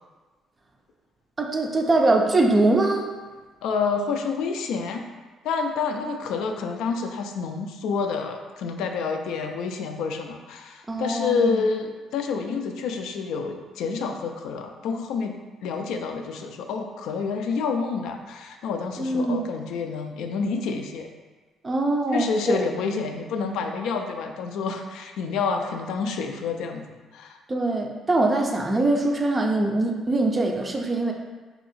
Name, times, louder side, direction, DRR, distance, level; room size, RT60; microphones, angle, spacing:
voice 1, 1.4-3.1 10.9-11.7 19.0-19.5 21.6-22.6 27.5-31.1, right 2 dB, 20° right, 2 dB, 0.3 m, -23 dB
voice 2, 3.6-5.0 5.4-15.4 15.6-21.1 22.1-27.4, left 5 dB, 80° left, 4 dB, 0.3 m, -28 dB
2.8 x 2.7 x 4.0 m, 1.3 s
cardioid pair, 150°, 0 cm